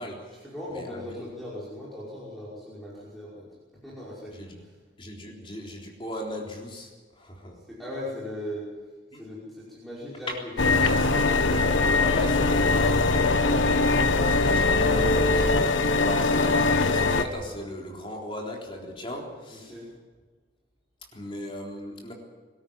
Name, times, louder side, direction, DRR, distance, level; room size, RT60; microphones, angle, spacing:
voice 1, 0.0-0.4 0.7-1.2 4.3-4.6 5.0-7.6 9.1-9.2 10.3-10.4 11.0-11.1 11.9-19.8 21.1-22.1, left 1 dB, 25° left, 0 dB, 3.8 m, -38 dB
voice 2, 0.5-3.5 3.8-4.3 7.7-8.6 9.1-10.3 10.7-11.3 19.5-19.9, left 1 dB, ahead, -8 dB, 5.4 m, -38 dB
sound 1, 10.6-17.2, left 3 dB, 90° left, 1.5 m, -22 dB
23.5 x 13.0 x 9.3 m, 1.4 s
head